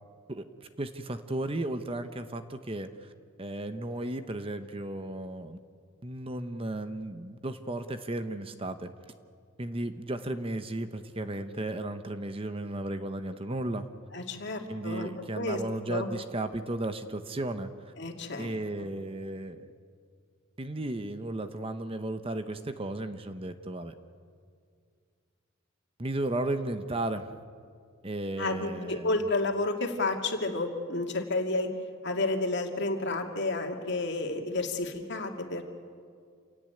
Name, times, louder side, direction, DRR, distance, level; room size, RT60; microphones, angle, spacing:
voice 1, 0.8-3.1 3.4-5.6 6.0-8.9 9.6-13.9 14.7-17.9 18.4-19.7 20.6-23.9 26.0-27.3 28.0-29.2, right 1 dB, 25° right, 9 dB, 1.0 m, -34 dB
voice 2, 14.1-15.6 15.9-16.1 18.0-18.5 28.4-31.7 32.0-35.6, left 2 dB, 55° left, 3 dB, 2.5 m, -31 dB
28.5 x 17.5 x 9.2 m, 2.2 s
head